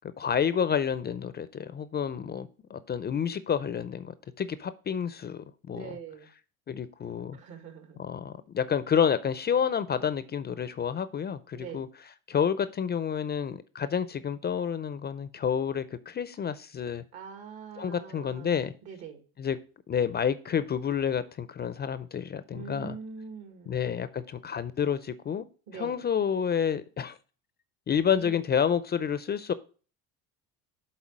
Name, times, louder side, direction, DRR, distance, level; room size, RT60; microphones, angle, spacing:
voice 1, 0.2-5.9 6.7-7.4 8.0-11.9 12.3-17.0 17.8-18.7 19.4-19.6 19.9-23.0 23.7-25.5 25.7-27.2 27.9-29.5, left 7 dB, 25° left, 14 dB, 0.4 m, -29 dB
voice 2, 5.7-6.3 7.3-8.0 11.5-11.9 17.1-19.2 22.5-23.8 25.7-26.1 28.2-28.4, right 7 dB, 65° right, 5 dB, 1.9 m, -43 dB
7.3 x 4.0 x 5.0 m, 0.38 s
supercardioid pair, 90°, 40 cm